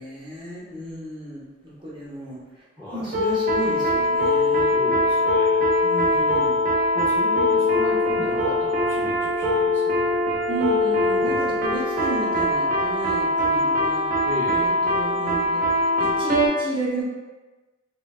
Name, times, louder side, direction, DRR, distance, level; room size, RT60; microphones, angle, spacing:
voice 1, 0.0-2.4 2.9-4.7 5.8-6.6 10.5-14.1 14.5-17.0, right 1 dB, 25° right, -8 dB, 0.8 m, -33 dB
voice 2, 2.8-3.1 4.7-5.6 6.1-6.5 6.9-10.2 11.2-11.6 14.2-14.8, left 1 dB, 10° left, -10 dB, 0.5 m, -35 dB
sound 1, 3.1-16.5, left 1 dB, 45° right, 0.4 m, -22 dB
3.1 x 2.2 x 2.3 m, 1.2 s
head